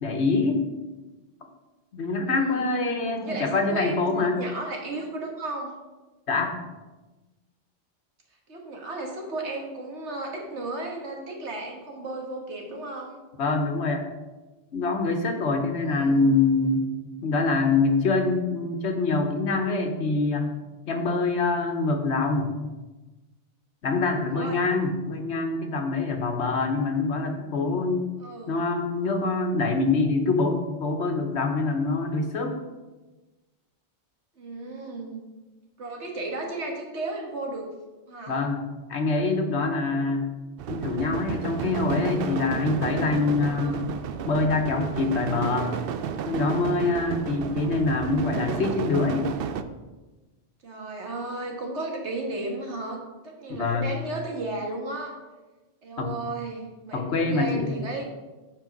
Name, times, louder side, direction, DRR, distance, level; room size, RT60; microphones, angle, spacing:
voice 1, 0.0-0.6 1.9-4.4 6.3-6.5 13.4-14.0 14.7-16.9 17.2-20.5 20.9-22.5 23.8-28.1 28.5-32.6 38.3-38.6 38.9-40.3 40.7-43.8 44.2-45.7 46.3-49.3 53.5-53.9 56.0-56.1 56.9-57.8, left 3 dB, 75° left, 4 dB, 1.3 m, -25 dB
voice 2, 2.3-2.9 3.2-5.8 8.5-13.2 15.8-16.3 24.3-24.6 28.2-28.6 34.4-35.2 35.8-37.7 38.1-38.4 43.5-43.8 47.4-48.1 50.6-55.2 55.8-58.0, right 2 dB, 80° right, 0 dB, 1.8 m, -34 dB
sound 1, 40.6-49.6, right 7 dB, 65° right, 0.7 m, -32 dB
7.4 x 5.2 x 5.2 m, 1.2 s
omnidirectional pair, 1.1 m